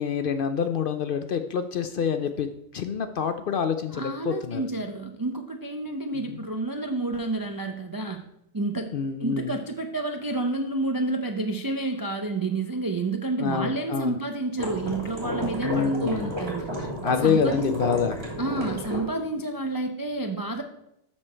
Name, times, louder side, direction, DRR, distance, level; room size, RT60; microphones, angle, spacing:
voice 1, 0.0-4.7 6.1-6.4 8.9-9.6 13.4-14.2 15.6-16.3 17.0-18.2, left 6 dB, 60° left, 9 dB, 0.6 m, -27 dB
voice 2, 3.9-8.2 8.5-8.9 9.2-16.7 17.2-17.7 18.4-20.6, right 2 dB, 35° right, 4 dB, 0.3 m, -29 dB
sound 1, 14.6-19.0, equal, 55° right, 3.2 m, -32 dB
13.0 x 4.4 x 4.4 m, 0.80 s
omnidirectional pair, 1.3 m